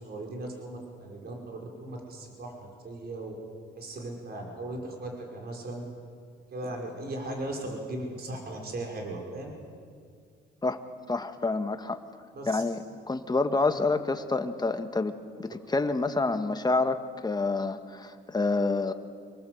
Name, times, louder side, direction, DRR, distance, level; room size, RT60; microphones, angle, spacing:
voice 1, 0.0-3.3 3.8-5.8 6.5-9.5 12.3-12.6, right 1 dB, 50° right, 1 dB, 5.7 m, -37 dB
voice 2, 11.1-12.0 12.5-18.9, left 3 dB, 20° left, 8 dB, 1.7 m, -28 dB
26.5 x 20.0 x 8.1 m, 2.1 s
cardioid pair, 90°, 20 cm